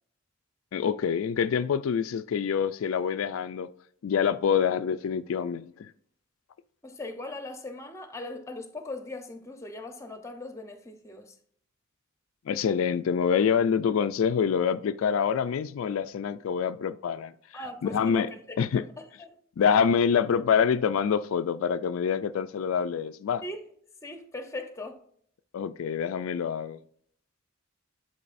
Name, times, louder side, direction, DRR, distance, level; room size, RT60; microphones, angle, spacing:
voice 1, 0.7-3.7 4.0-5.9 12.5-17.3 17.8-18.3 18.6-18.8 19.6-23.4 25.5-26.8, left 7 dB, 85° left, 0.3 m, -26 dB
voice 2, 6.8-11.3 17.5-18.8 23.4-23.6 24.0-25.0, left 2 dB, 15° left, 0.8 m, -39 dB
11.0 x 3.9 x 2.5 m
head